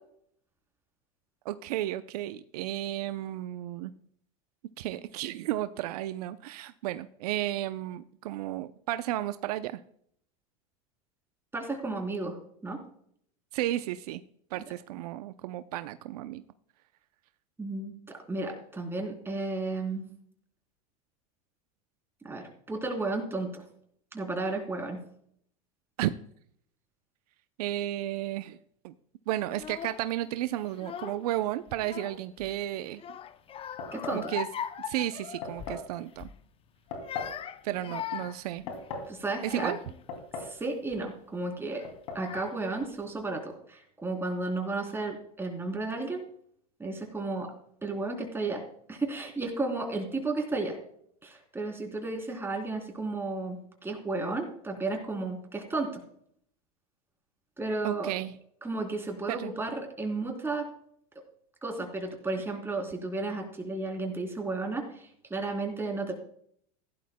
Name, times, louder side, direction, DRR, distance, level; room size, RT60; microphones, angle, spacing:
voice 1, 1.5-3.9 4.8-9.8 13.5-14.2 14.5-16.4 26.0-26.1 27.6-28.6 28.8-28.9 29.3-33.0 34.1-34.5 34.9-36.3 37.6-38.6 39.4-39.8 57.8-58.3 59.3-59.5, right 14 dB, 75° right, 12 dB, 0.6 m, -33 dB
voice 2, 11.5-12.4 12.6-12.8 17.6-20.1 22.2-23.6 24.1-25.0 33.9-34.2 39.1-39.7 40.4-41.8 42.2-46.3 46.8-47.5 47.8-48.6 48.9-50.8 51.2-56.0 57.6-58.1 58.6-60.7 61.6-64.8 65.3-66.1, right 3 dB, 10° right, 2 dB, 3.4 m, -33 dB
Child speech kid speaking / Crying sobbing, 29.5-30.1 30.7-31.4 31.7-32.5 33.0-35.8 36.1-36.4 36.9-40.0 40.7-41.0 41.8-41.9 42.2-42.9, left 9 dB, 30° left, 0.6 m, -40 dB
sound 1, 33.8-34.3 35.4-35.9 36.9-37.4 38.4-39.1 40.1-40.6 40.9-41.0 41.8-42.3, left 4 dB, 80° left, 2.8 m, -38 dB
15.5 x 11.5 x 2.2 m, 0.65 s
supercardioid pair, 115°, 20 cm